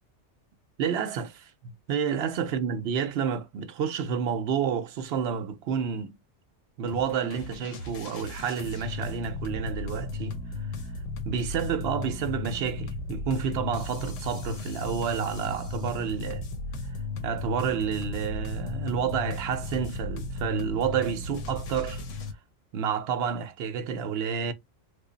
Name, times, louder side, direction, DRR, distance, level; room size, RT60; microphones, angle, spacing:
voice 1, 0.8-6.1 6.8-10.4 11.2-16.5 17.2-22.0 22.7-24.5, right 7 dB, 65° right, 0.7 m, -30 dB
sound 1, 6.9-22.3, left 3 dB, 90° left, 1.1 m, -35 dB
3.3 x 2.0 x 3.8 m
omnidirectional pair, 1.3 m